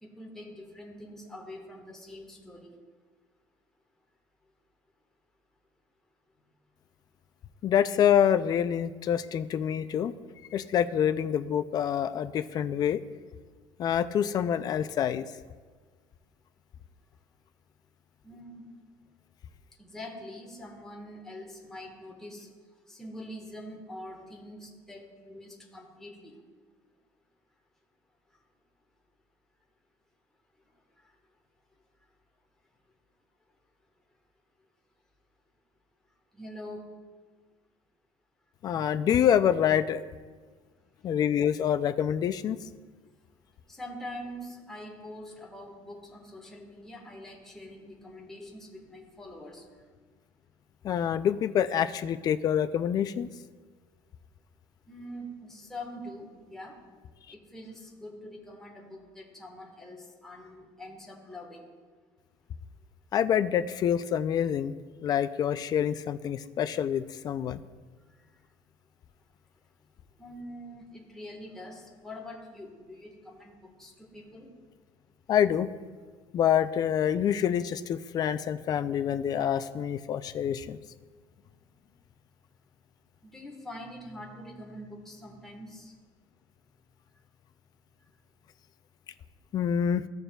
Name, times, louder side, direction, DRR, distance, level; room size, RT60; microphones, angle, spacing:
voice 1, 0.0-2.7 18.2-18.6 19.8-22.5 22.9-26.3 36.3-36.9 43.7-49.6 54.9-56.7 57.3-61.6 70.2-74.5 83.2-85.9, left 1 dB, 5° left, -2 dB, 1.3 m, -44 dB
voice 2, 7.6-10.1 10.5-13.0 13.8-15.3 38.6-40.0 41.0-42.6 50.8-53.3 63.1-64.7 65.0-67.6 75.3-75.7 76.3-80.8 89.5-90.1, left 9 dB, 35° left, 12 dB, 0.3 m, -26 dB
15.5 x 6.6 x 2.3 m, 1.5 s
cardioid pair, 155°, 11 cm